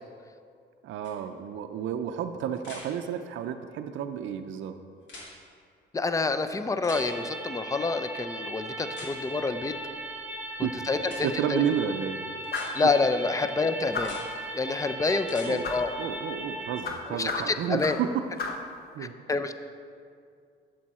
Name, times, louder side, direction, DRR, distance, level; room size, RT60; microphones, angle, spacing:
voice 1, 0.8-4.7 10.6-10.9 11.2-12.2 15.5-15.7 16.0-18.5 18.9-19.1, right 8 dB, 75° right, 6 dB, 0.5 m, -31 dB
sound 1, 1.0-1.1 2.6-2.9 5.0-5.3 6.8-7.0 8.9-9.1 11.0-11.2 12.4-12.7 13.9-14.2 15.2-15.5 17.6-17.7, left 2 dB, 70° left, 2.1 m, -44 dB
voice 2, 5.9-9.7 10.9-11.6 12.7-14.2 14.5-15.9 17.1-18.0 19.0-19.5, left 3 dB, 15° left, 10 dB, 0.5 m, -27 dB
sound 2, 6.9-16.8, right 1 dB, 10° right, 1.0 m, -38 dB
sound 3, 12.5-12.8 13.9-14.3 15.6-15.9 16.8-18.1 18.4-18.7, left 4 dB, 50° left, 0.9 m, -33 dB
7.6 x 7.4 x 4.2 m, 2.3 s
cardioid pair, 90°, 20 cm